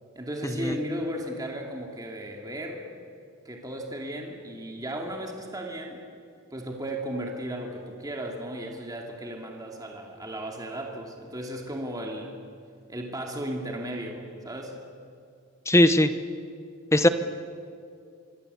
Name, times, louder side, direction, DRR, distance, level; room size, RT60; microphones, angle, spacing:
voice 1, 0.1-2.9 3.4-6.0 6.5-12.4 12.9-14.8, right 1 dB, 15° right, 1 dB, 2.6 m, -35 dB
voice 2, 15.7-16.1 16.9-17.1, left 1 dB, 15° left, 10 dB, 0.9 m, -18 dB
25.5 x 24.5 x 8.2 m, 2.3 s
head